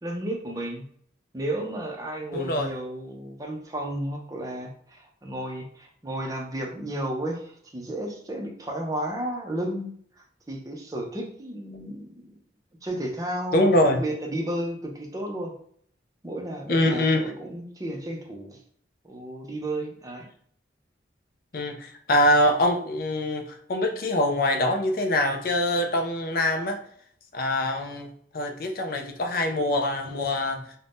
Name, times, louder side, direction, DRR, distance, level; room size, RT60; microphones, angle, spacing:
voice 1, 0.0-0.8 1.3-12.3 12.8-15.5 16.2-18.6 19.0-20.3, right 1 dB, 20° right, 0.5 m, -33 dB
voice 2, 2.3-2.7 13.5-14.0 16.7-17.3 21.5-26.8 27.3-28.1 28.3-30.6, left 1 dB, 50° left, 0.4 m, -24 dB
2.6 x 2.1 x 3.4 m
head